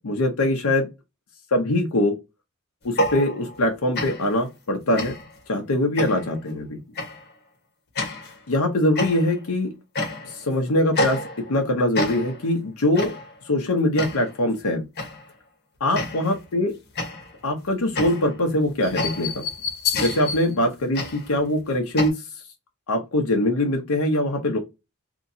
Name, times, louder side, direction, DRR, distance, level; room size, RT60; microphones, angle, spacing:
voice 1, 0.0-0.9 1.5-2.2 2.8-5.1 5.5-6.8 8.5-9.7 10.2-13.1 13.5-14.8 15.8-16.7 17.4-19.4 20.0-22.1 22.9-24.6, left 1 dB, 75° left, 0.7 m, -23 dB
sound 1, 2.8-3.7 3.9-4.4 5.0-5.4 6.0-6.4 7.0-7.3 8.0-8.4 9.0-9.5 9.9-10.5 10.9-11.6 11.9-12.5 13.0-13.4 14.0-14.4 15.0-15.3 15.9-16.4 17.0-22.1, left 2 dB, 50° left, 1.0 m, -29 dB
2.9 x 2.6 x 2.6 m
head